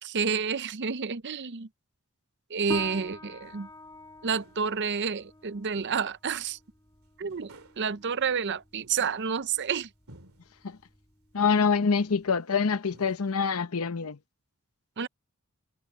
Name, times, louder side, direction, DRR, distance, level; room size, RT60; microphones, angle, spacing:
voice 1, 0.0-1.7 2.5-3.7 4.2-6.6 7.2-9.9 15.0-15.1, right 6 dB, 50° right, 0.6 m, -30 dB
sound 1, 2.7-12.3, left 2 dB, 15° left, 6.5 m, -46 dB
sound 2, 3.5-3.6 4.3-4.7 5.7-6.2 6.6-6.7 7.3-7.9 8.7-9.3 10.1-10.5 11.5-12.0 12.5-12.6 12.9-13.4, right 2 dB, 70° right, 2.7 m, -54 dB
voice 2, 11.3-14.2, left 5 dB, 70° left, 0.8 m, -25 dB
head